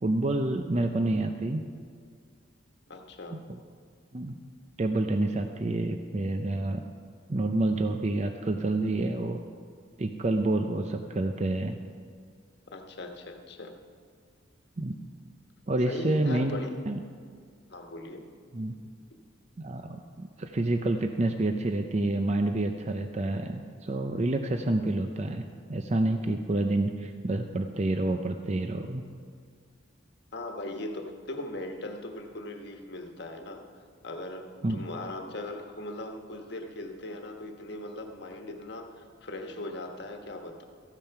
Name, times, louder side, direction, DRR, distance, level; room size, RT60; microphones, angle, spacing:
voice 1, 0.0-1.6 3.3-3.6 4.1-4.3 4.8-6.8 7.3-9.4 10.0-11.8 14.8-15.0 15.7-16.6 16.9-17.0 18.5-18.7 19.6-29.1 34.6-34.8, right 2 dB, 35° right, 6 dB, 0.5 m, -28 dB
voice 2, 2.9-3.4 12.7-13.7 15.9-16.7 17.7-18.2 30.3-33.6 34.0-34.4 34.7-40.6, left 2 dB, 55° left, 4 dB, 1.3 m, -39 dB
14.5 x 9.0 x 5.8 m, 2.1 s
head